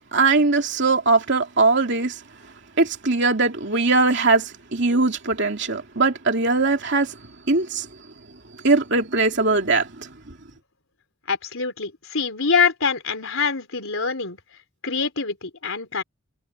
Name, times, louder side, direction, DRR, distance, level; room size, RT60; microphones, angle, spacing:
voice 1, 0.1-2.2 2.8-7.1 7.5-7.9 8.6-10.1, right 3 dB, 50° right, 2.9 m, -20 dB
voice 2, 11.3-14.4 14.8-16.0, left 5 dB, 65° left, 3.9 m, -24 dB
head